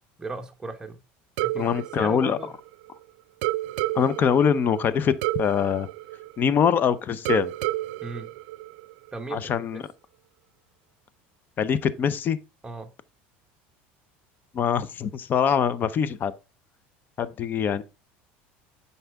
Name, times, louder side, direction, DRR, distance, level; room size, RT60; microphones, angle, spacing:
voice 1, 0.2-1.0 1.4-2.5 8.0-8.3 9.1-9.8 12.6-12.9, right 3 dB, 15° right, 1.0 m, -37 dB
sound 1, 1.4-3.0 3.4-6.8 7.3-9.2, right 18 dB, 80° right, 0.4 m, -31 dB
voice 2, 1.6-2.4 3.9-5.9 6.4-7.5 9.3-9.8 11.6-12.4 14.5-16.3 17.2-17.8, left 7 dB, 35° left, 0.7 m, -23 dB
7.8 x 5.6 x 3.5 m
supercardioid pair, 125°, 5 cm